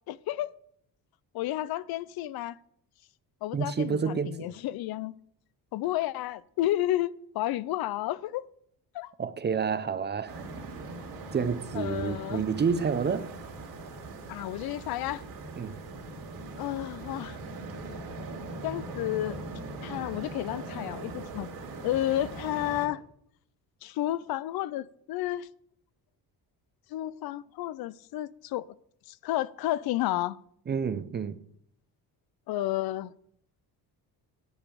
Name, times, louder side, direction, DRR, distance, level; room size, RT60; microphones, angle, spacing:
voice 1, 0.1-0.5 1.3-2.6 3.4-5.2 5.7-8.4 8.9-9.1 11.7-12.4 14.3-15.2 16.6-17.4 18.6-21.5 21.8-23.0 23.8-25.5 26.9-28.7 29.1-30.4 32.5-33.1, left 14 dB, 70° left, 0.5 m, -31 dB
voice 2, 3.5-4.5 9.2-10.4 11.3-13.3 15.6-15.8 30.7-31.4, right 6 dB, 25° right, 0.6 m, -29 dB
sound 1, 10.3-22.9, right 3 dB, 65° right, 2.8 m, -41 dB
10.5 x 5.1 x 8.5 m
cardioid pair, 130°, 38 cm